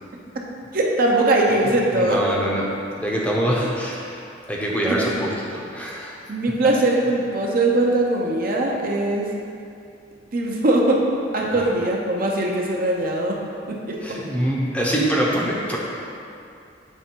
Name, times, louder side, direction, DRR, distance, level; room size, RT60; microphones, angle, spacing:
voice 1, 0.7-2.4 3.6-3.7 4.9-5.1 6.3-9.3 10.3-11.0 11.3-13.4 13.7-14.2, right 2 dB, 50° right, -1 dB, 0.6 m, -21 dB
voice 2, 1.9-4.2 4.5-6.2 11.4-11.6 14.0-15.8, equal, 5° left, -4 dB, 0.7 m, -24 dB
7.0 x 3.4 x 4.4 m, 2.6 s
head